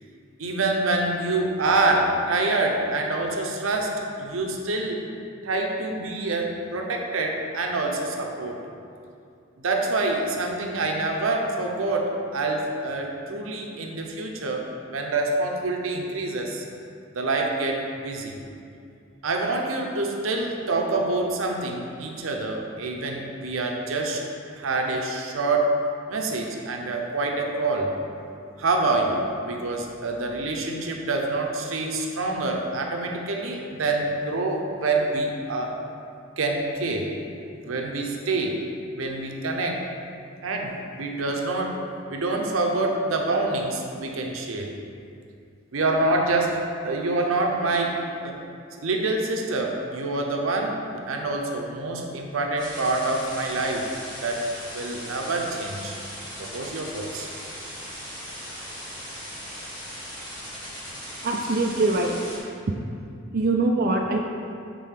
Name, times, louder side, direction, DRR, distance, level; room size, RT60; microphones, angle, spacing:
voice 1, 0.4-5.1 5.4-8.6 9.6-16.6 17.1-18.4 19.2-24.2 24.6-25.8 26.1-27.9 28.6-35.7 36.4-37.1 37.6-38.6 38.9-39.8 40.4-41.8 42.1-44.7 45.7-48.4 48.8-53.9 54.2-54.5 54.7-55.9 56.4-57.3 58.5-58.6, right 2 dB, 90° right, 2 dB, 0.7 m, -26 dB
sound 1, 52.6-62.4, equal, 20° left, 1.1 m, -38 dB
voice 2, 61.2-62.2 63.3-64.2, right 2 dB, 45° right, 1 dB, 0.4 m, -23 dB
7.5 x 3.6 x 3.6 m, 2.4 s
head